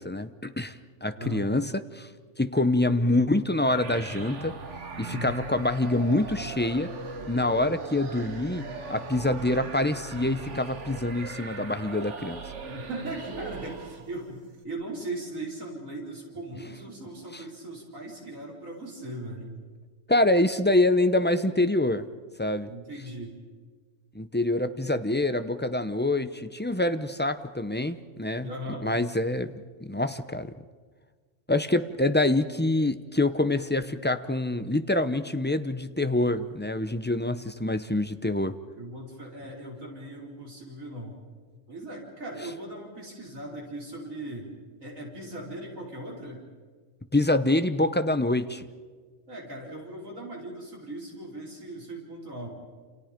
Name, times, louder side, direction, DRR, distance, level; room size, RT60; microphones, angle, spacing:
voice 1, 0.0-2.1 2.4-4.5 5.0-6.9 7.3-12.4 20.1-22.0 22.4-22.7 24.1-28.5 28.8-29.5 29.8-30.5 31.5-38.5 47.1-48.6, left 2 dB, 10° left, 10 dB, 0.6 m, -26 dB
voice 2, 1.2-1.5 5.1-5.5 12.7-19.6 22.7-23.4 28.4-28.9 38.8-41.2 41.7-44.5 44.8-46.4 49.3-52.5, right 2 dB, 90° right, -1 dB, 5.1 m, -38 dB
sound 1, 3.6-14.2, right 3 dB, 65° right, 1.8 m, -39 dB
29.0 x 28.5 x 5.2 m, 1.5 s
omnidirectional pair, 1.3 m